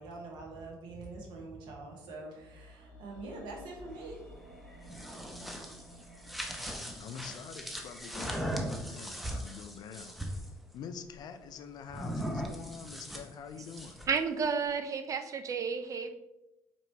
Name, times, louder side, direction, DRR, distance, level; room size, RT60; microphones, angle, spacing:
voice 1, 0.0-4.2, right 2 dB, 75° right, 1 dB, 1.0 m, -44 dB
sound 1, 2.3-12.5 12.7-12.8, equal, 15° left, 1.4 m, -56 dB
sound 2, 4.7-10.5 11.9-14.2, equal, ahead, 0.7 m, -39 dB
voice 2, 6.9-10.2 10.7-14.0, left 7 dB, 60° left, 9 dB, 0.4 m, -46 dB
voice 3, 14.1-16.1, right 5 dB, 45° right, 8 dB, 0.5 m, -31 dB
4.4 x 2.9 x 2.7 m, 0.92 s
hypercardioid pair, 60°, 8 cm